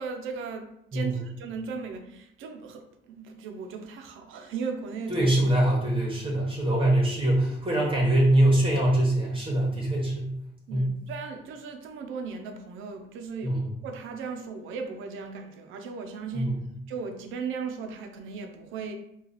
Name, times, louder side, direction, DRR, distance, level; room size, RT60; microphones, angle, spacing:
voice 1, 0.0-5.2 10.7-13.6 13.8-16.5 16.9-18.9, right 5 dB, 85° right, 5 dB, 0.5 m, -37 dB
voice 2, 0.9-1.2 5.1-10.3 10.7-10.9 13.4-13.7 16.3-16.5, right 1 dB, 25° right, -3 dB, 1.0 m, -23 dB
3.0 x 2.3 x 3.9 m, 0.79 s
cardioid pair, 90°, 20 cm